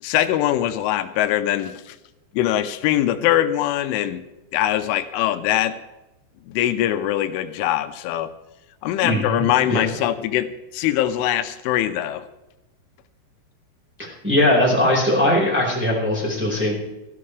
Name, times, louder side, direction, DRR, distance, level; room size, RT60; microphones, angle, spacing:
voice 1, 0.0-2.0 2.3-4.2 4.5-5.8 6.5-8.3 8.8-12.3, left 12 dB, 85° left, 10 dB, 3.2 m, -22 dB
voice 2, 9.0-9.8 14.2-16.7, left 1 dB, 5° right, -3 dB, 3.9 m, -20 dB
18.5 x 14.0 x 3.3 m, 0.98 s
omnidirectional pair, 5.5 m